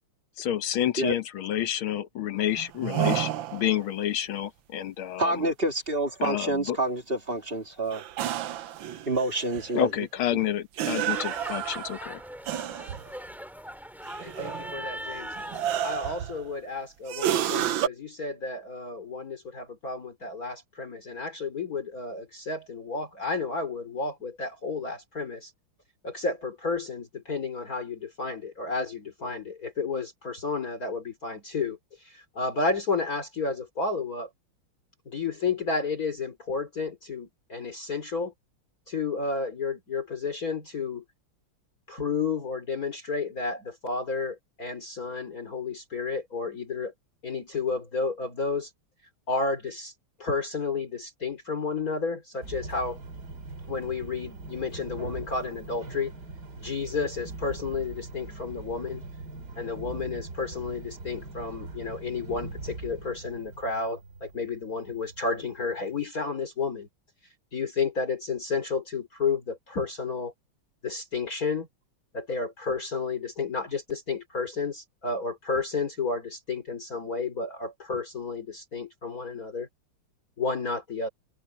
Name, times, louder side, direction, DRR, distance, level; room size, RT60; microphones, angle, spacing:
voice 1, 0.4-5.5 6.2-6.8 9.7-12.2, left 11 dB, 75° left, 1.9 m, -29 dB
sound 1, 2.6-3.8 7.9-9.8 10.8-13.1 14.1-14.9 15.4-16.5 17.1-17.9, right 11 dB, 70° right, 1.5 m, -30 dB
voice 2, 5.2-8.0 9.1-9.9, right 2 dB, 25° right, 2.2 m, -27 dB
sound 2, 11.1-16.1, equal, ahead, 3.8 m, -40 dB
voice 3, 14.2-15.4 15.8-25.5 26.0-34.3 35.1-38.3 38.9-41.0 41.9-46.9 47.2-48.7 49.3-49.9 50.2-53.0 53.7-56.1 56.6-59.1 59.6-66.9 67.5-70.3 70.8-71.7 72.1-79.7 80.4-81.1, left 4 dB, 40° left, 3.5 m, -31 dB
sound 3, 52.4-66.1, right 3 dB, 50° right, 3.1 m, -42 dB
omnidirectional pair, 2.3 m